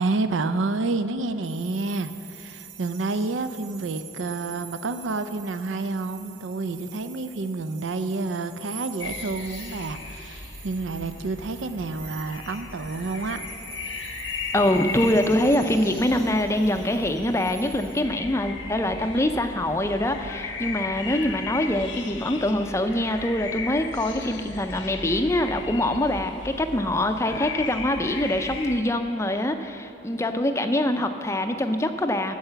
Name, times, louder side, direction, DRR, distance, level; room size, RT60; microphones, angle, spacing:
voice 1, 0.0-13.4, right 3 dB, 85° right, 11 dB, 0.5 m, -29 dB
sound 1, 1.4-18.0, right 7 dB, 70° right, 1.0 m, -46 dB
sound 2, 9.0-28.8, left 4 dB, 85° left, 1.0 m, -37 dB
voice 2, 14.5-32.3, left 1 dB, 15° left, 7 dB, 0.5 m, -24 dB
13.5 x 4.8 x 7.9 m, 3.0 s
head